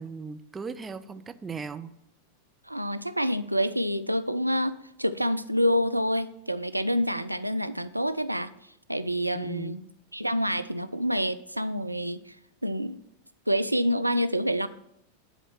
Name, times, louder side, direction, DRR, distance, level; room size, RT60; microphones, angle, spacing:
voice 1, 0.0-1.9 9.3-9.8, right 5 dB, 15° right, 10 dB, 0.5 m, -38 dB
voice 2, 2.7-8.5 8.9-9.8 10.1-12.4 12.6-13.0 13.5-14.7, equal, 85° right, 12 dB, 0.3 m, -27 dB
9.9 x 4.3 x 6.1 m, 0.81 s
figure-of-eight pair, 90°, 0 cm